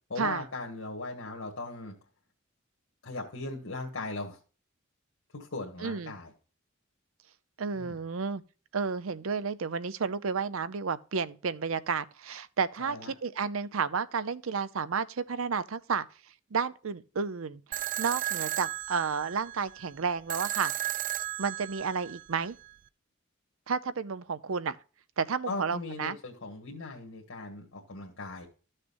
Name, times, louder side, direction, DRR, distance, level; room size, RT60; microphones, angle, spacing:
voice 1, 0.1-2.0 3.0-4.4 5.3-6.3 7.8-8.0 12.8-13.1 25.5-28.5, left 2 dB, 85° left, 1.7 m, -38 dB
voice 2, 5.8-6.1 7.6-8.4 8.7-16.1 16.5-20.7 21.4-22.6 23.7-24.8 25.2-26.2, right 5 dB, 85° right, 0.6 m, -31 dB
sound 1, 17.7-22.7, right 14 dB, 40° right, 0.3 m, -35 dB
13.0 x 6.6 x 2.6 m
head